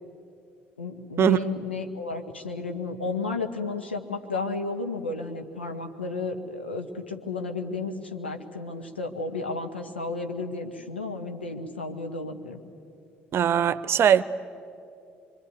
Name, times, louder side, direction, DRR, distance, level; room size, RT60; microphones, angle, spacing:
voice 1, 0.8-12.6, left 3 dB, 85° left, 1.4 m, -33 dB
voice 2, 13.3-14.2, right 8 dB, 45° right, 0.8 m, -20 dB
25.0 x 25.0 x 9.5 m
figure-of-eight pair, 50°, 6 cm